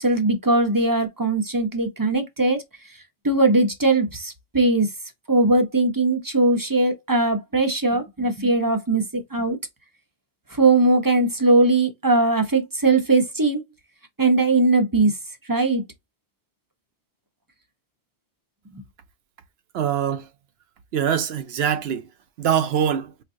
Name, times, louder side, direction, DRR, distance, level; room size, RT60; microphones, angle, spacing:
voice 1, 0.0-2.6 3.2-4.9 5.3-9.6 10.5-13.6 14.2-15.1 15.5-15.8, right 2 dB, 25° right, 0.6 m, -20 dB
voice 2, 19.7-20.3 20.9-22.0 22.4-23.1, right 8 dB, 70° right, 0.8 m, -23 dB
4.6 x 2.4 x 2.6 m
omnidirectional pair, 1.2 m